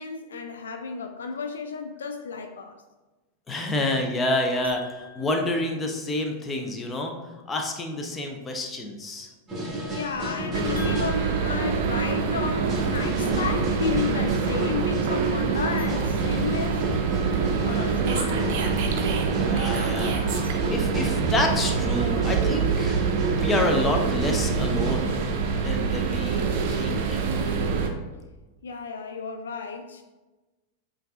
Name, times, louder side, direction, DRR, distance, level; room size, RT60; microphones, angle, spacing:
voice 1, 0.0-2.8 9.9-16.8 17.6-18.6 28.6-30.0, left 5 dB, 65° left, 5 dB, 0.4 m, -32 dB
voice 2, 3.5-7.1 7.5-9.3 19.4-20.2 20.7-23.0 23.3-25.2 25.6-26.4 26.7-27.5, left 1 dB, 15° left, 3 dB, 0.7 m, -28 dB
sound 1, 4.6-6.3 10.7-12.8 15.7-17.3 20.2-21.4, left 4 dB, 85° left, 0.9 m, -46 dB
sound 2, 9.5-11.2 11.4-12.1 12.4-25.3, right 1 dB, 15° right, 1.4 m, -34 dB
sound 3, 10.5-27.9, right 5 dB, 50° right, 0.6 m, -25 dB
7.7 x 2.6 x 2.4 m, 1.1 s
figure-of-eight pair, 90°, 0 cm